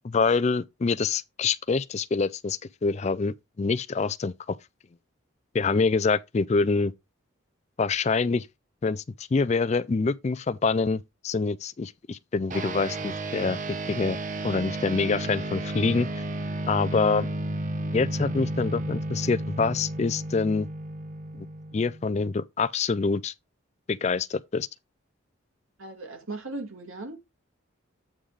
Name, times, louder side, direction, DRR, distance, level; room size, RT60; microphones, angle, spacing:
voice 1, 0.0-4.6 5.5-6.9 7.8-8.5 8.8-9.0 9.3-13.6 13.9-14.2 14.4-16.2 16.7-17.3 17.9-20.7 21.4-21.5 21.7-23.3 23.9-24.7, left 4 dB, 35° left, 0.3 m, -26 dB
sound 1, 12.5-22.2, right 1 dB, 40° right, 0.8 m, -33 dB
voice 2, 25.8-27.2, right 2 dB, 85° right, 2.3 m, -37 dB
8.6 x 3.8 x 4.8 m
head